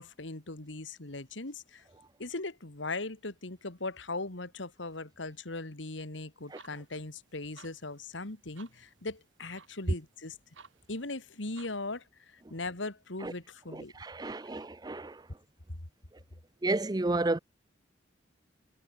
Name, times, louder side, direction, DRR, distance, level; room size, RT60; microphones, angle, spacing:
voice 1, 0.0-1.8 2.2-10.4 10.9-13.9 14.3-14.4, left 2 dB, 80° left, 2.3 m, -39 dB
sound 1, 6.4-12.0, right 5 dB, 90° right, 3.7 m, -59 dB
voice 2, 13.7-15.2 16.6-17.4, right 2 dB, 20° right, 0.5 m, -32 dB
head